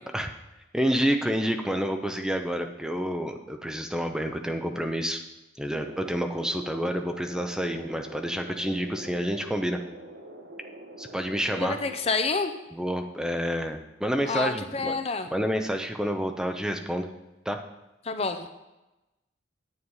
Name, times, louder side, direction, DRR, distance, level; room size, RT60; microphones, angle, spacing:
voice 1, 0.7-5.2 5.6-9.8 11.0-11.8 12.7-15.0 15.3-17.1 17.4-17.6, equal, 5° right, 5 dB, 0.7 m, -28 dB
sound 1, 5.8-12.1, right 1 dB, 60° right, 1.6 m, -45 dB
voice 2, 11.6-12.5 14.2-15.3 18.0-18.5, left 4 dB, 30° left, 8 dB, 0.6 m, -28 dB
9.8 x 8.1 x 5.5 m, 1.0 s
head